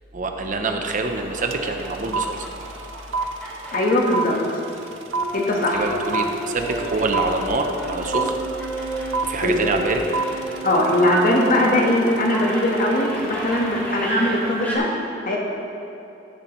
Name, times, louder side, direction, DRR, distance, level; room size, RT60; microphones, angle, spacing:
voice 1, 0.1-2.5 5.7-8.3 9.2-10.0, right 3 dB, 45° right, 4 dB, 0.7 m, -25 dB
sound 1, 0.8-14.8, equal, 10° left, 1.8 m, -37 dB
sound 2, 1.5-1.6 1.8-13.0, right 4 dB, 80° right, 0.6 m, -28 dB
voice 2, 3.7-4.3 5.3-5.9 9.4-9.7 10.6-14.8 15.3-15.4, left 1 dB, 45° left, -1 dB, 1.4 m, -20 dB
sound 3, 5.1-11.5, right 2 dB, 65° left, 2.3 m, -32 dB
14.0 x 7.6 x 3.1 m, 2.9 s
head